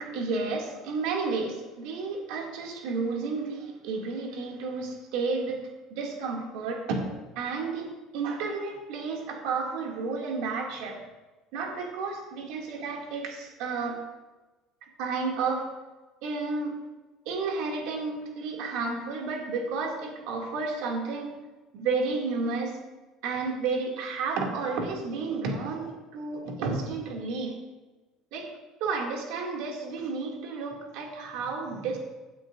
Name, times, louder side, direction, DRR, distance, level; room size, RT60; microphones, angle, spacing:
voice 1, 0.0-5.6 5.9-7.1 7.4-11.0 11.5-14.0 14.8-15.7 16.2-16.7 17.2-21.4 21.7-22.8 23.2-27.6 28.3-28.5 28.8-32.0, right 4 dB, 70° right, -1 dB, 2.5 m, -31 dB
16.0 x 8.8 x 2.7 m, 1.2 s
cardioid pair, 170°, 0 cm